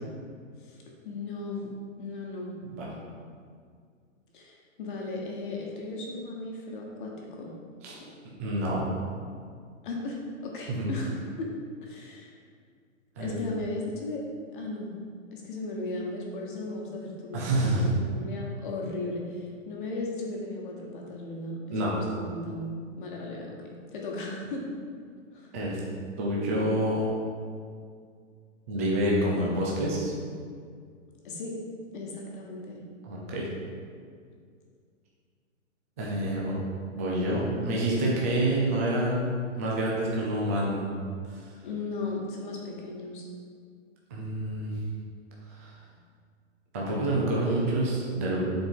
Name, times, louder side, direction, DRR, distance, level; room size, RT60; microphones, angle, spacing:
voice 1, 1.0-1.7 2.0-2.5 4.3-7.5 7.9-8.1 9.8-11.5 11.8-12.4 13.2-14.2 14.5-14.9 15.3-23.6 23.9-24.7 25.3-25.5 31.2-31.6 31.9-32.8 41.6-43.3, left 2 dB, 40° left, -1 dB, 1.3 m, -36 dB
voice 2, 8.4-8.8 10.7-10.9 13.2-13.4 17.3-17.9 21.7-21.9 25.5-25.8 26.2-27.1 28.7-30.1 33.0-33.5 36.0-36.6 37.0-39.3 39.6-40.9 41.2-41.3 44.1-44.7 45.5-45.7 46.7-48.4, right 1 dB, 10° right, -5 dB, 0.5 m, -27 dB
7.7 x 4.5 x 5.4 m, 2.1 s
hypercardioid pair, 165°, 39 cm